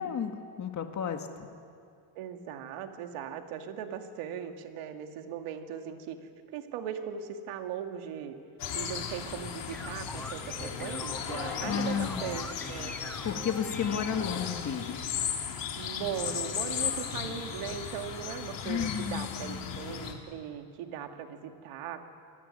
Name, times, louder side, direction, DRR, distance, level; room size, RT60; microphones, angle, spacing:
voice 1, 0.0-1.5 11.6-12.2 13.2-15.2 18.6-19.9, left 7 dB, 35° left, 5 dB, 1.9 m, -33 dB
voice 2, 2.2-6.2 6.5-8.3 8.7-12.9 15.8-22.1, right 8 dB, 80° right, 5 dB, 2.5 m, -39 dB
sound 1, 8.6-20.1, left 8 dB, 60° left, 3.4 m, -36 dB
sound 2, 9.7-14.7, left 1 dB, 5° left, 1.4 m, -43 dB
27.0 x 19.0 x 9.9 m, 2.3 s
cardioid pair, 130°, 49 cm